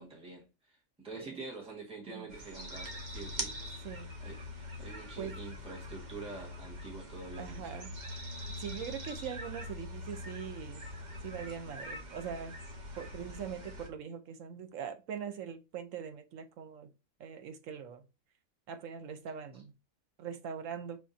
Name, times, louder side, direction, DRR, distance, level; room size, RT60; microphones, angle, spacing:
voice 1, 0.0-3.5 4.2-7.9, right 3 dB, 5° right, 1.5 m, -46 dB
sound 1, 2.3-13.9, left 1 dB, 40° right, 0.9 m, -43 dB
voice 2, 7.4-7.9 8.6-10.8 11.2-12.6 13.0-16.9 17.2-18.0 18.7-19.7 20.2-21.0, right 7 dB, 70° right, 1.0 m, -42 dB
5.6 x 3.6 x 2.6 m
omnidirectional pair, 1.5 m